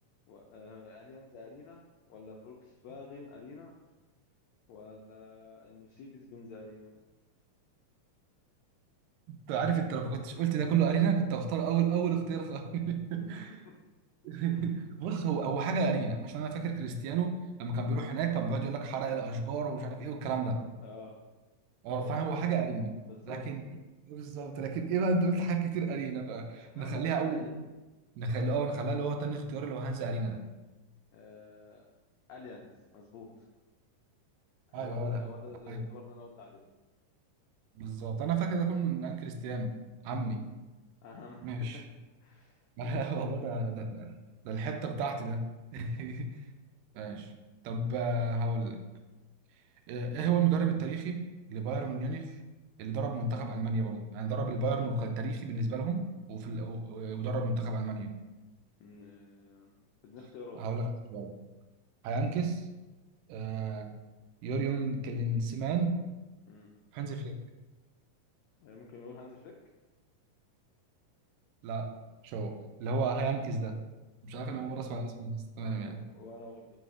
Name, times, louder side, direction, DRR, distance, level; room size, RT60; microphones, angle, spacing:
voice 1, 0.3-3.7 4.7-6.9 13.2-13.8 14.4-14.6 20.8-21.2 22.0-22.3 23.0-23.4 26.4-27.6 31.1-31.9 32.3-33.4 34.7-36.6 40.3-40.4 41.0-41.7 42.2-43.0 45.8-46.0 58.8-59.7 60.0-60.6 66.5-66.7 68.6-69.5 74.3-74.8 75.6-76.8, left 3 dB, 90° left, 0 dB, 1.5 m, -49 dB
voice 2, 9.3-13.6 14.2-20.6 21.8-23.0 23.3-23.6 24.1-27.5 28.2-30.4 34.7-35.2 35.7-35.8 37.8-39.7 40.0-40.4 41.4-41.8 42.8-44.2 44.4-46.3 47.0-47.3 47.6-48.8 49.9-52.4 52.8-58.1 60.6-61.3 62.0-62.7 63.3-63.9 64.4-66.0 66.9-67.4 71.6-71.9 72.2-72.6 72.8-73.8 74.2-76.0, right 4 dB, 80° right, 5 dB, 2.1 m, -32 dB
5.0 x 4.1 x 4.8 m, 1.1 s
omnidirectional pair, 3.9 m